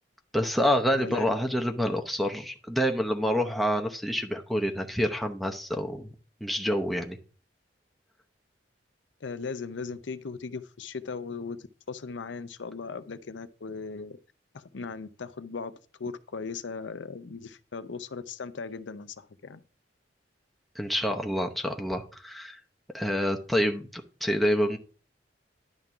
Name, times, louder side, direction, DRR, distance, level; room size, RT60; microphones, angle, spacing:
voice 1, 0.3-6.1 6.4-7.2 20.8-22.6 22.9-24.8, equal, ahead, 0.8 m, -27 dB
voice 2, 1.0-1.3 9.2-14.2 14.5-19.6, left 4 dB, 85° left, 0.6 m, -38 dB
11.0 x 3.8 x 5.6 m
head